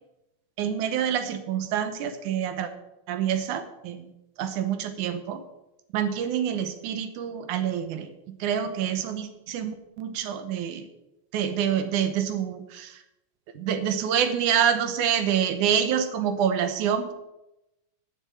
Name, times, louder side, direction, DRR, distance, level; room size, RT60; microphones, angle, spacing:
voice 1, 0.6-2.7 3.1-4.1 4.4-5.4 5.9-10.9 11.3-13.0 13.6-17.1, right 8 dB, 75° right, 9 dB, 2.4 m, -27 dB
10.5 x 6.1 x 8.8 m, 0.92 s
omnidirectional pair, 3.5 m